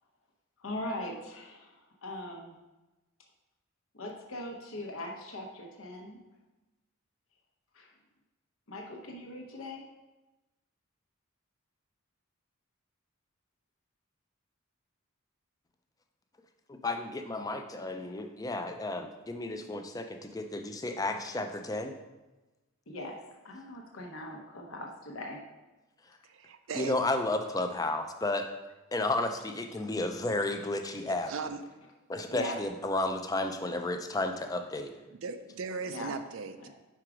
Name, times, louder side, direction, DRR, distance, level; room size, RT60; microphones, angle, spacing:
voice 1, 0.6-2.5 3.9-6.2 7.7-7.9 8.7-9.8 22.9-23.2 23.4-25.4 32.3-32.6 35.9-36.1 36.6-36.7, left 1 dB, 70° left, 1 dB, 0.9 m, -40 dB
voice 2, 16.7-21.9 26.7-28.4 28.9-31.3 32.1-34.9, left 2 dB, 15° left, 6 dB, 0.4 m, -32 dB
voice 3, 26.3-26.9 31.1-31.6 35.1-36.5, right 5 dB, 65° right, 9 dB, 0.4 m, -38 dB
4.9 x 4.5 x 4.8 m, 1.1 s
head